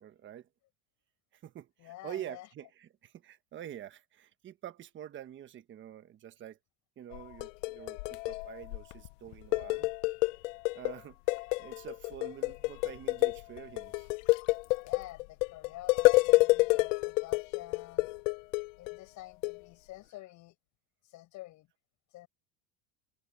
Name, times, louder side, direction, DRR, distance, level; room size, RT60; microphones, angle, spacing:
voice 1, 0.0-0.5 1.3-6.6 7.0-9.9 10.7-14.1, right 11 dB, 30° right, 1.4 m, -46 dB
voice 2, 1.8-2.5 14.8-18.1 18.8-20.5 21.0-21.7 22.1-22.3, left 17 dB, 50° left, 6.5 m, -49 dB
sound 1, 7.1-9.1 9.3-11.0 11.3-19.0 19.4-19.6, left 22 dB, 80° left, 0.6 m, -28 dB
supercardioid pair, 140°, 37 cm